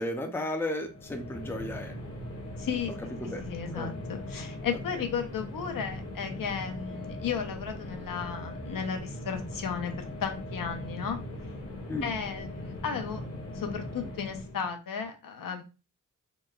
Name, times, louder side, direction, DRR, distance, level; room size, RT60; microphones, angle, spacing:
voice 1, 0.0-1.9 3.1-4.0 11.9-12.1, left 1 dB, 5° left, 3 dB, 0.4 m, -34 dB
sound 1, 0.8-14.7, left 1 dB, 45° left, 0.7 m, -40 dB
voice 2, 2.6-9.9 10.2-11.2 12.0-13.2 13.5-15.6, left 7 dB, 85° left, 5 dB, 0.5 m, -34 dB
2.9 x 2.1 x 2.2 m, 0.32 s
wide cardioid pair, 130°, 32 cm